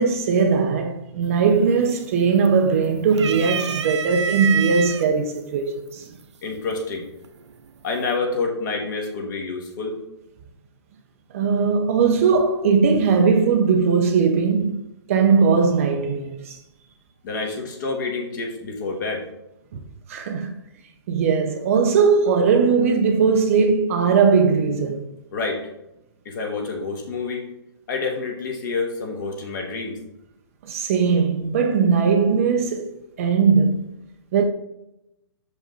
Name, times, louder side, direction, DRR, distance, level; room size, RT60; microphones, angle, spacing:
voice 1, 0.0-6.1 11.3-14.8 15.1-16.6 19.7-19.8 20.1-20.5 21.1-25.1 30.6-33.8 34.3-34.4, right 5 dB, 30° right, 0.5 m, -19 dB
sound 1, 1.3-1.7 2.0-2.7 3.1-5.0 5.9-6.0 7.2-7.7, right 7 dB, 80° right, 0.5 m, -27 dB
voice 2, 6.4-7.1 7.8-10.0 17.2-19.3 25.3-25.6 26.2-27.5 27.9-30.0, left 4 dB, 40° left, 1.5 m, -28 dB
6.3 x 5.0 x 3.8 m
hypercardioid pair, 160°, 15 cm